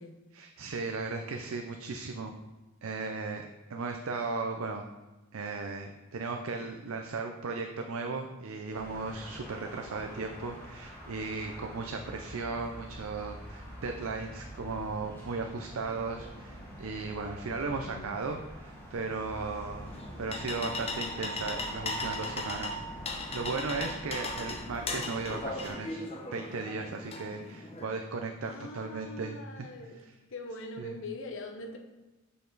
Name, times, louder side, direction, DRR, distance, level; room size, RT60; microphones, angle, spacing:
voice 1, 0.3-2.3 2.8-4.9 5.3-26.0 26.3-29.4 30.8-30.9, right 4 dB, 80° right, 4 dB, 0.5 m, -36 dB
sound 1, 8.7-25.7, equal, 10° left, 2.3 m, -46 dB
voice 2, 17.6-18.2 28.4-30.0 30.3-31.8, left 2 dB, 65° left, 2 dB, 1.0 m, -42 dB
sound 2, 19.9-27.8, left 2 dB, 30° left, 0.8 m, -37 dB
6.7 x 5.3 x 3.9 m, 1.1 s
head